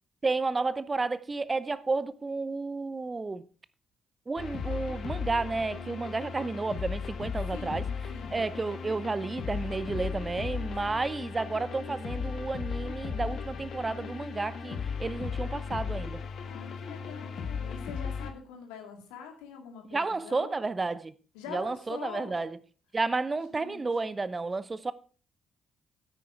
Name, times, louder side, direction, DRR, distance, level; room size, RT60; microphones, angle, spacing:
voice 1, 0.2-3.4 4.3-7.8 8.3-16.2 19.9-21.1 21.5-22.5 22.9-24.9, right 3 dB, 30° right, 0.8 m, -31 dB
sound 1, 4.4-18.3, left 6 dB, 60° left, 1.4 m, -36 dB
voice 2, 7.5-8.4 10.9-11.0 16.4-20.7 21.3-22.4 23.5-23.9, left 6 dB, 80° left, 2.1 m, -45 dB
9.4 x 9.2 x 4.7 m
hypercardioid pair, 45°, 0 cm